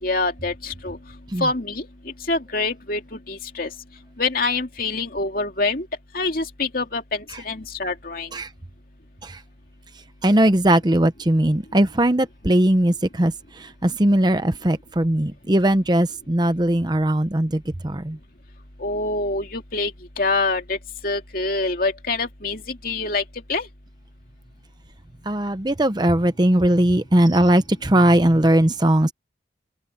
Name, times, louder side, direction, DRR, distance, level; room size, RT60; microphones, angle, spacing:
voice 1, 0.0-1.0 1.4-1.9 2.3-3.7 4.2-5.9 6.1-8.3 18.8-19.9 20.2-20.8 21.0-23.2 23.5-23.7, left 3 dB, 50° left, 2.6 m, -25 dB
voice 2, 10.2-18.2 25.3-29.1, right 1 dB, 25° right, 0.8 m, -19 dB
head